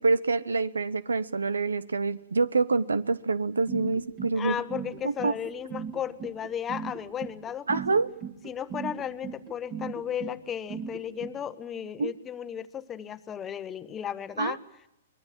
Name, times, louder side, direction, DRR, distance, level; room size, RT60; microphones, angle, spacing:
voice 1, 0.0-4.6 5.0-5.3 7.7-8.1 12.0-12.1 14.4-14.6, right 4 dB, 85° right, 19 dB, 1.0 m, -26 dB
sound 1, 3.7-11.3, right 7 dB, 35° right, 2.9 m, -37 dB
voice 2, 4.3-8.0 8.4-14.6, left 9 dB, 20° left, 14 dB, 1.2 m, -35 dB
24.5 x 21.0 x 7.5 m, 0.86 s
hypercardioid pair, 120°, 0 cm